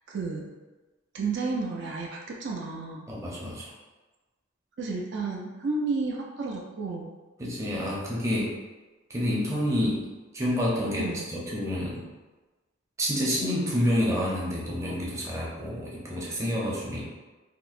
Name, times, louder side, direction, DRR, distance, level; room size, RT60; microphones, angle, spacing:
voice 1, 0.1-0.5 1.1-3.1 4.8-7.1 11.0-11.3, right 3 dB, 60° right, -1 dB, 0.4 m, -32 dB
voice 2, 3.1-3.7 7.4-8.5 9.1-10.1 10.3-12.0 13.0-17.0, equal, 15° right, -5 dB, 0.6 m, -28 dB
4.4 x 2.0 x 2.4 m, 1.2 s
head